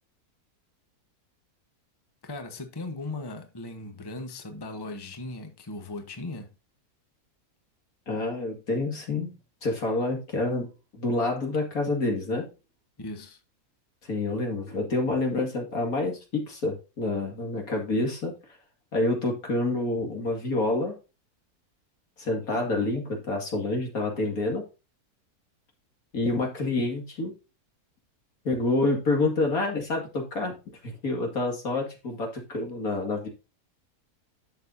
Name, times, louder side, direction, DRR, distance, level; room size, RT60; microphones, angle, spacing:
voice 1, 2.2-6.5 13.0-13.4, left 2 dB, 15° left, 1.1 m, -38 dB
voice 2, 8.1-9.3 9.6-12.5 14.0-18.3 18.9-20.9 22.2-24.6 26.1-27.3 28.4-30.5 30.8-33.3, left 2 dB, 65° left, 2.7 m, -28 dB
11.0 x 6.6 x 2.7 m
omnidirectional pair, 1.6 m